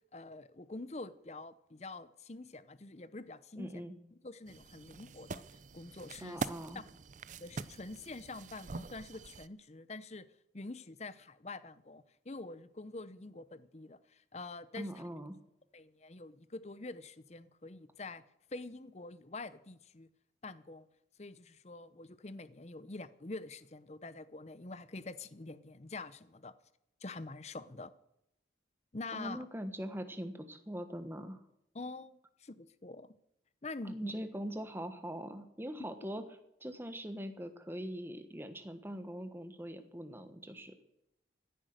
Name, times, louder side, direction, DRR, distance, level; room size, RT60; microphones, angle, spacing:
voice 1, 0.1-3.8 4.1-5.4 5.7-6.4 7.4-10.3 10.5-14.9 15.7-18.2 18.5-20.1 20.4-20.8 21.2-26.5 27.0-27.9 28.9-29.4 31.7-33.2 33.6-34.2, left 3 dB, 35° left, 15 dB, 0.7 m, -46 dB
voice 2, 3.6-3.9 6.2-6.8 14.7-15.3 29.1-31.4 33.8-36.2 36.6-40.7, equal, 10° right, 9 dB, 1.2 m, -42 dB
sound 1, 4.5-9.5, right 4 dB, 40° right, 0.5 m, -44 dB
15.5 x 10.0 x 6.6 m, 0.80 s
head